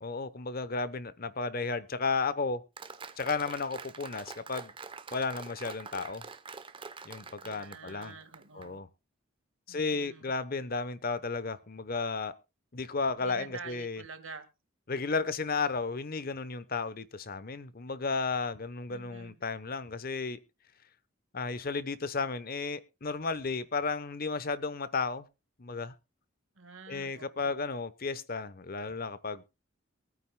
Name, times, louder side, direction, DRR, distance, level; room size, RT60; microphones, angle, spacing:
voice 1, 0.0-2.6 3.2-4.7 5.1-6.2 7.0-8.2 8.5-8.9 9.7-12.3 12.7-14.0 14.9-20.4 21.3-25.3 25.6-25.9 26.9-29.5, left 4 dB, 45° left, 15 dB, 0.8 m, -33 dB
Applause, 2.8-8.7, right 5 dB, 25° right, 0.7 m, -46 dB
voice 2, 7.4-8.8 9.7-10.3 13.2-14.5 18.9-19.4 26.6-27.7, right 4 dB, 70° right, 10 dB, 1.6 m, -48 dB
23.0 x 9.2 x 2.2 m, 0.26 s
head